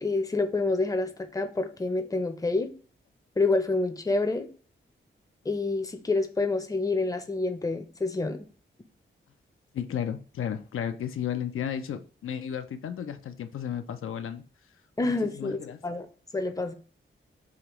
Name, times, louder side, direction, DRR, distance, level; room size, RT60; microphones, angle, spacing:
voice 1, 0.0-2.7 3.4-4.5 5.5-8.4 15.0-16.1 16.3-16.7, left 3 dB, 15° left, 7 dB, 0.6 m, -28 dB
voice 2, 9.7-14.4 15.0-15.8, left 9 dB, 80° left, 8 dB, 0.5 m, -33 dB
5.0 x 2.9 x 3.0 m, 0.41 s
wide cardioid pair, 95°, 21 cm